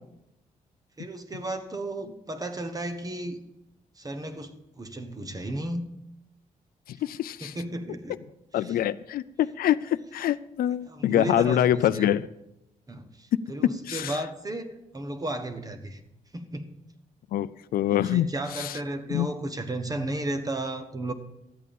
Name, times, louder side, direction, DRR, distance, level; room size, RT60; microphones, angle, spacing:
voice 1, 1.0-3.4 4.0-5.8 7.4-8.2 8.5-8.8 10.9-12.1 12.9-16.0 16.3-16.7 18.0-21.1, right 1 dB, 25° right, 8 dB, 1.3 m, -34 dB
voice 2, 6.9-7.5 8.5-12.3 13.9-14.2 17.3-18.3 18.5-18.8 19.1-19.3, left 11 dB, 80° left, 15 dB, 0.4 m, -25 dB
13.0 x 8.4 x 5.4 m, 0.85 s
cardioid pair, 90°, 15 cm